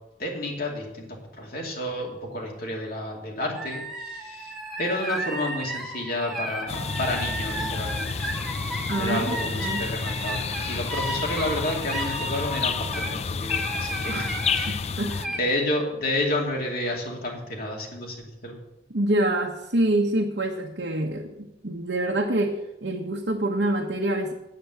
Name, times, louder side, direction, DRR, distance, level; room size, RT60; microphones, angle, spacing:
voice 1, 0.2-1.1 1.4-4.5 4.8-8.2 9.0-14.8 15.3-18.2 18.4-18.6, left 1 dB, 55° left, -1 dB, 2.5 m, -30 dB
sound 1, 3.5-13.1 13.5-14.7 15.1-15.4, right 1 dB, ahead, 2.3 m, -34 dB
sound 2, 6.7-15.3, left 5 dB, 35° left, 0.4 m, -30 dB
voice 2, 8.9-9.8 14.1-14.3 14.7-15.3 18.9-24.3, right 1 dB, 70° right, -1 dB, 1.2 m, -26 dB
8.8 x 8.3 x 7.9 m, 0.92 s
head